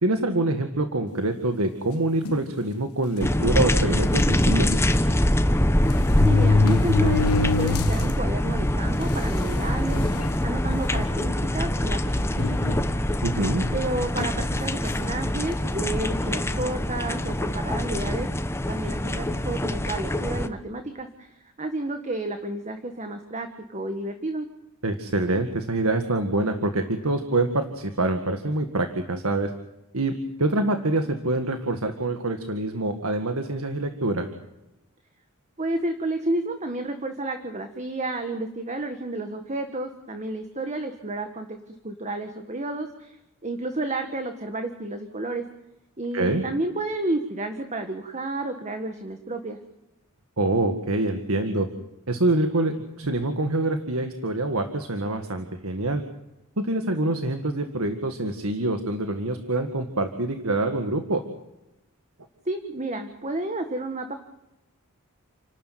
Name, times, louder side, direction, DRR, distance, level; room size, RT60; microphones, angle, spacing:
voice 1, 0.0-4.8 13.2-13.6 24.8-29.5 29.9-30.1 30.4-34.3 46.1-46.4 50.4-51.7 52.1-56.0 56.6-61.2, right 2 dB, 75° right, 6 dB, 1.9 m, -25 dB
sound 1, 2.3-2.5 3.3-3.4 3.7-3.8 5.1-5.2 5.9-8.1 8.6-8.7 9.5-9.6 10.0-10.3 10.9-11.1 12.4-13.2 14.2-14.4, left 3 dB, 90° left, 1.2 m, -24 dB
sound 2, 3.2-20.5, left 1 dB, 10° left, 1.1 m, -24 dB
voice 2, 6.2-12.8 13.7-18.3 18.7-24.5 35.6-43.2 43.4-45.4 46.0-49.6 62.4-64.1, right 2 dB, 30° right, 6 dB, 1.7 m, -31 dB
30.0 x 12.5 x 9.4 m, 0.94 s
head